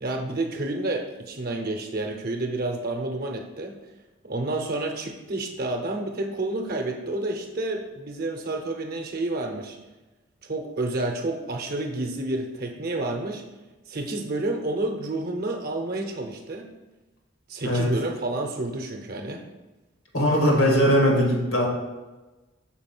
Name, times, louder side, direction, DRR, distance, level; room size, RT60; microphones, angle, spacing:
voice 1, 0.0-3.8 4.2-9.8 10.4-13.4 13.9-16.7 17.5-19.5, right 2 dB, 50° right, 3 dB, 0.8 m, -29 dB
voice 2, 20.1-21.7, equal, 90° left, -1 dB, 1.9 m, -20 dB
6.0 x 4.1 x 6.0 m, 1.1 s
head